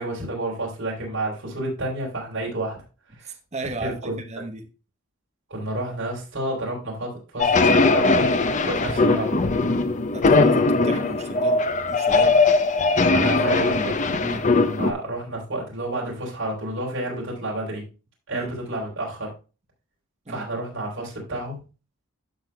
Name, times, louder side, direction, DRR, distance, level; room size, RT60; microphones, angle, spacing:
voice 1, 0.0-2.8 3.2-3.3 3.8-4.2 5.5-8.3 8.6-9.5 13.1-14.2 14.6-17.9 18.3-19.3 20.3-21.6, right 1 dB, 60° right, -2 dB, 3.7 m, -30 dB
voice 2, 3.2-4.6 8.7-9.0 10.1-12.4 14.2-14.4 18.3-18.5 20.3-20.5, right 2 dB, 30° right, 4 dB, 1.1 m, -35 dB
sound 1, 7.4-14.9, left 3 dB, 35° left, 0.7 m, -20 dB
13.5 x 6.2 x 2.2 m, 0.31 s
head